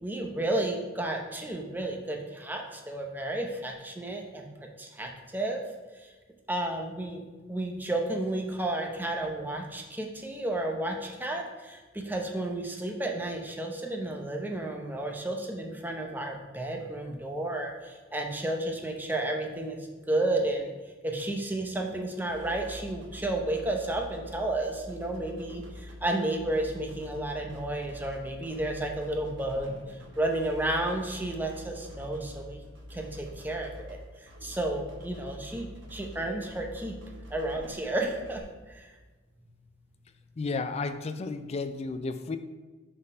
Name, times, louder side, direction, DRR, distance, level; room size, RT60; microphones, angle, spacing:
voice 1, 0.0-4.5 4.8-5.6 5.9-6.1 6.5-7.2 7.5-20.7 21.0-32.6 32.9-37.0 37.3-38.9, right 1 dB, 10° right, 2 dB, 0.6 m, -32 dB
sound 1, 22.3-38.4, equal, 60° right, 1.3 m, -46 dB
voice 2, 40.4-42.4, left 3 dB, 30° left, 10 dB, 0.3 m, -32 dB
5.3 x 4.2 x 5.4 m, 1.3 s
head